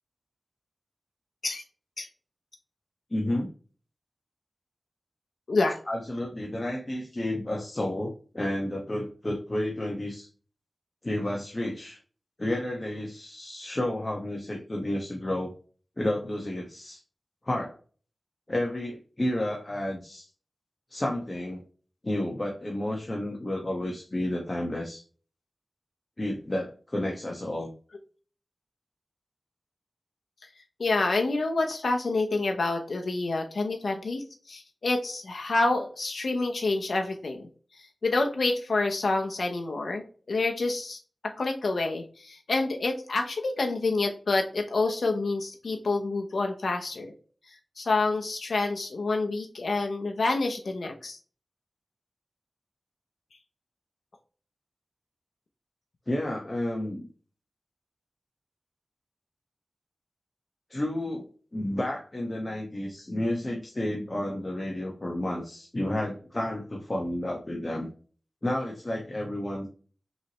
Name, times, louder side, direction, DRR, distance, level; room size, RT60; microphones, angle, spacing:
voice 1, 3.1-3.5 5.9-10.3 11.0-12.0 12.4-15.5 16.0-17.0 17.4-17.8 18.5-20.3 20.9-21.6 22.0-25.0 26.2-27.7 56.1-57.1 60.7-67.9 68.4-69.7, left 1 dB, 35° left, -1 dB, 1.2 m, -31 dB
voice 2, 30.8-37.5 38.0-41.0 41.4-47.1 47.8-51.2, left 3 dB, 80° left, 3 dB, 0.8 m, -28 dB
5.4 x 3.2 x 3.0 m, 0.39 s
cardioid pair, 50°, 0 cm